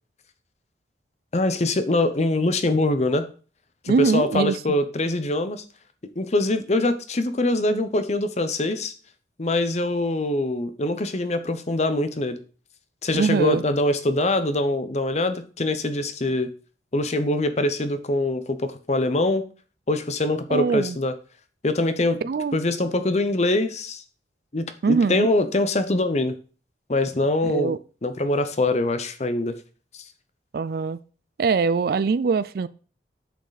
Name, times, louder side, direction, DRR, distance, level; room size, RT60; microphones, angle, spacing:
voice 1, 1.3-3.3 3.8-5.6 6.2-8.9 9.4-12.4 13.0-16.5 16.9-19.4 19.9-21.1 21.6-22.2 22.5-24.0 24.5-26.3 26.9-27.7 28.0-29.6 29.9-30.0, left 2 dB, 40° left, 0.7 m, -23 dB
voice 2, 3.9-4.6 13.1-13.6 20.5-21.0 22.2-22.6 24.8-25.3 27.4-27.8 30.5-31.0 31.4-32.7, right 4 dB, 55° right, 0.4 m, -22 dB
8.2 x 6.5 x 4.0 m
head